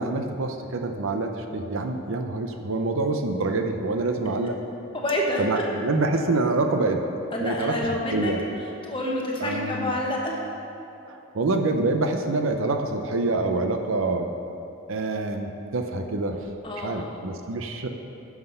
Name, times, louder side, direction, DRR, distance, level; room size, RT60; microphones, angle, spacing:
voice 1, 0.0-4.6 5.4-7.0 7.4-7.8 8.1-8.4 9.4-9.9 11.1-14.3 14.9-16.4 16.8-17.9, right 3 dB, 65° right, 5 dB, 0.6 m, -26 dB
voice 2, 4.9-5.4 7.3-8.3 8.8-10.4 16.6-17.2, left 1 dB, 25° left, -2 dB, 1.1 m, -28 dB
9.6 x 5.9 x 5.5 m, 2.8 s
head